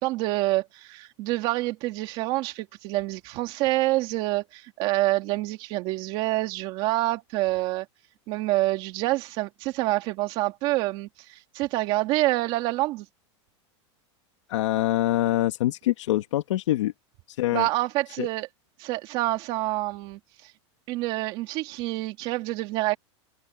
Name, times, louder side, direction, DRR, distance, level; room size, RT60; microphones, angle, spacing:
voice 1, 0.0-7.9 8.3-13.1 17.5-18.5 18.8-20.5 20.9-23.0, right 18 dB, 35° right, 2.4 m, -27 dB
voice 2, 14.5-16.9 17.3-17.7 18.2-18.3, left 15 dB, 80° left, 2.1 m, -25 dB
supercardioid pair, 180°, 15 cm